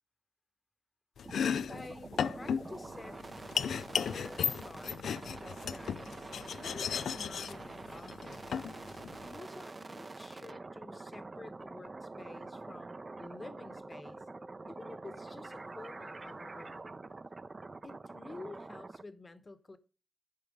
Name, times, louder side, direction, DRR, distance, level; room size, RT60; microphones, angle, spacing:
Domestic sounds home sounds, 1.2-9.4, left 7 dB, 90° left, 0.3 m, -36 dB
sound 1, 1.2-19.0, right 3 dB, 35° right, 0.6 m, -46 dB
voice 1, 1.7-3.2 3.7-8.7 9.2-14.2 14.7-16.9 17.8-19.8, left 2 dB, 30° left, 1.1 m, -50 dB
Wind instrument woodwind instrument, 9.8-16.9, right 1 dB, 10° right, 0.9 m, -55 dB
10.5 x 4.6 x 5.2 m
cardioid pair, 90°, 0 cm